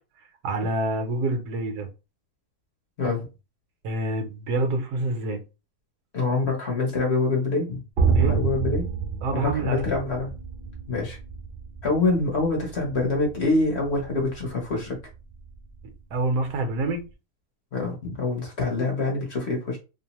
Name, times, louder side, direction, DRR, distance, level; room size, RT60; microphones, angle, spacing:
voice 1, 0.4-1.9 3.8-5.4 8.1-8.4 9.2-9.8 16.1-17.0, right 2 dB, 80° right, 1.2 m, -26 dB
voice 2, 6.1-7.8 8.1-8.8 9.3-10.3 10.9-11.2 11.8-15.0 17.7-19.8, left 3 dB, 50° left, 0.9 m, -25 dB
sound 1, 8.0-17.0, right 5 dB, 60° right, 0.6 m, -29 dB
2.9 x 2.0 x 2.8 m
omnidirectional pair, 1.7 m